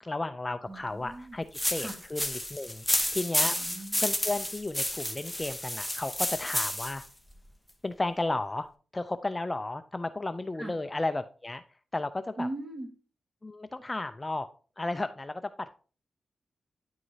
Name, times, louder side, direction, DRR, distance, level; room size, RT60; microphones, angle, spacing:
voice 1, 0.0-3.6 4.0-7.0 7.8-8.7 8.9-11.6 11.9-12.5 13.4-14.5 14.8-15.8, left 2 dB, 20° left, 10 dB, 0.4 m, -33 dB
voice 2, 0.7-1.4 1.8-2.0 3.4-4.0 10.6-10.7 12.4-12.9, right 1 dB, 30° right, 2 dB, 1.8 m, -38 dB
sound 1, 1.5-7.1, left 1 dB, 5° left, 0.8 m, -31 dB
9.8 x 4.7 x 2.7 m, 0.37 s
cardioid pair, 90°, 0 cm